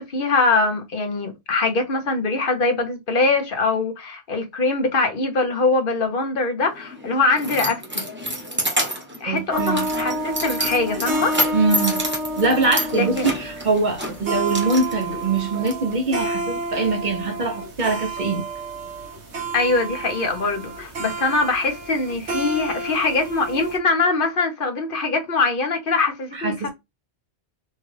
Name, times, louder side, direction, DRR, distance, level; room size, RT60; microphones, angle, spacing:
voice 1, 0.0-7.8 9.2-11.4 12.9-13.3 19.5-26.7, left 3 dB, 55° left, 1.1 m, -22 dB
Keys jangling, 6.6-15.7, right 1 dB, 10° right, 0.9 m, -29 dB
voice 2, 9.2-9.9 11.5-12.1 12.4-18.5 26.3-26.7, right 3 dB, 50° right, 0.8 m, -23 dB
sound 1, 9.5-23.8, right 1 dB, 85° right, 1.4 m, -30 dB
sound 2, 11.3-14.6 15.5-16.8 18.2-19.1, right 6 dB, 20° left, 1.3 m, -41 dB
4.4 x 2.4 x 3.2 m
omnidirectional pair, 1.1 m